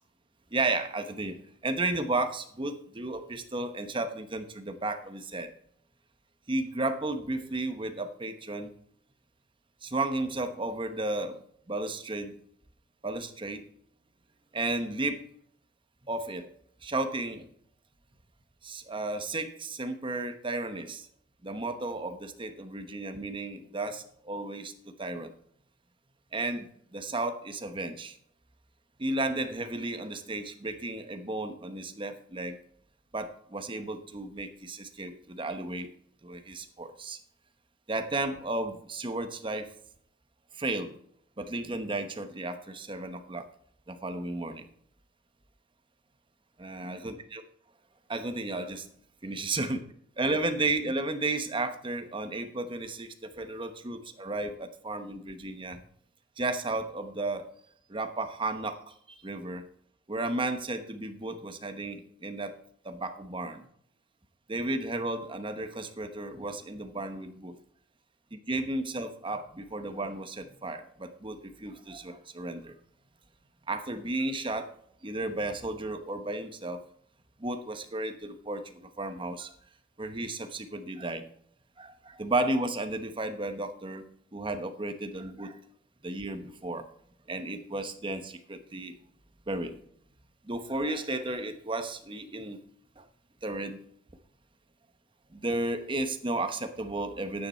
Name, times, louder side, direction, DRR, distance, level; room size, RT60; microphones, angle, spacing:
voice 1, 0.5-5.5 6.5-8.7 9.8-12.4 13.0-13.6 14.5-15.2 16.1-16.5 16.8-17.5 18.6-21.1 21.4-25.3 26.3-26.7 26.9-28.2 29.0-32.6 33.1-35.9 36.2-37.2 37.9-39.7 40.5-40.9 41.4-43.5 43.9-44.7 46.6-47.4 48.1-48.9 49.2-49.8 50.2-55.8 56.4-57.5 57.9-59.7 60.1-62.6 62.8-63.7 64.5-67.6 68.3-72.7 73.7-74.7 75.0-76.8 77.4-79.5 80.0-81.3 81.8-85.6 86.0-86.9 87.3-89.0 89.5-89.8 90.4-92.6 93.0-93.1 93.4-93.8 95.3-97.5, right 2 dB, 25° right, 8 dB, 1.0 m, -33 dB
10.5 x 8.9 x 4.4 m, 0.65 s
head